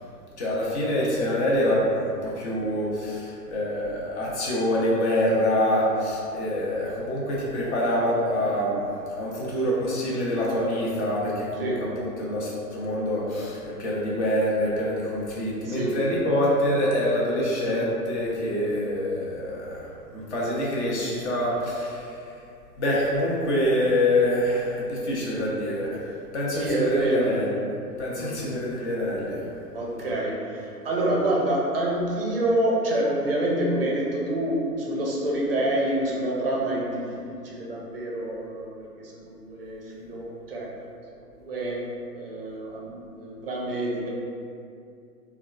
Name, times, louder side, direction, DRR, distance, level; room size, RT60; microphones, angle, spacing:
voice 1, 0.4-11.7 12.0-22.2 22.8-26.0 26.3-27.6 28.0-29.5 30.0-30.1, left 1 dB, 45° left, -5 dB, 0.9 m, -26 dB
voice 2, 15.6-16.0 26.5-27.3 28.1-28.5 29.7-37.1 37.4-40.6 41.4-41.8 42.1-44.1, right 1 dB, 40° right, -3 dB, 0.5 m, -27 dB
3.6 x 2.4 x 2.3 m, 2.5 s
figure-of-eight pair, 120°, 49 cm